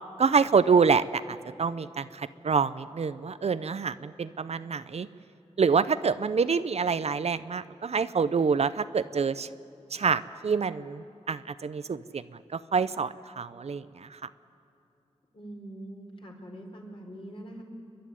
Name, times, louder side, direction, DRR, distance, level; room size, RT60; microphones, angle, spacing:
voice 1, 0.2-5.1 5.6-9.5 9.9-12.2 12.5-14.2, right 5 dB, 60° right, 14 dB, 0.6 m, -26 dB
voice 2, 15.3-17.6, right 1 dB, 45° left, 0 dB, 4.2 m, -43 dB
29.0 x 11.5 x 9.9 m, 2.7 s
wide cardioid pair, 90°, 12 cm